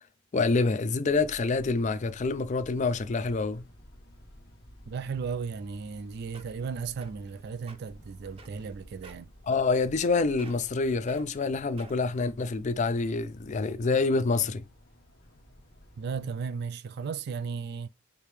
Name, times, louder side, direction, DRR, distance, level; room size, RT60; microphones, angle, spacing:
voice 1, 0.3-3.6 9.5-14.7, left 3 dB, 35° left, 0.4 m, -27 dB
sound 1, 1.1-16.3, equal, 50° left, 1.4 m, -53 dB
voice 2, 4.9-9.3 16.0-17.9, right 5 dB, 50° right, 0.3 m, -35 dB
sound 2, 6.0-6.1 6.3-6.6 7.0-7.3 7.6-7.8 8.4-8.7 9.0-9.3 9.7-10.1 10.4-10.7 11.1-11.2 11.8-12.1 12.8-12.9, right 3 dB, 30° right, 0.7 m, -50 dB
4.9 x 2.8 x 3.2 m
head